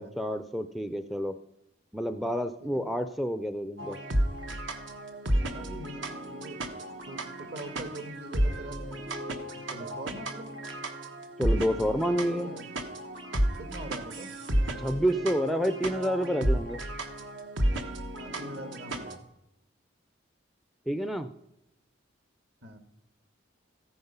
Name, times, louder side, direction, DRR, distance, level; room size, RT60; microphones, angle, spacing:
voice 1, 0.0-1.3 1.9-4.0 11.4-12.5 14.8-16.8 20.9-21.3, equal, ahead, 10 dB, 0.4 m, -29 dB
sound 1, 3.8-19.2, right 1 dB, 70° right, 1.3 m, -32 dB
voice 2, 5.4-9.1 9.5-10.5 12.0-12.7 13.6-14.3 18.1-19.3 22.6-22.8, right 1 dB, 55° right, 8 dB, 1.6 m, -43 dB
14.5 x 9.6 x 5.5 m, 0.85 s
head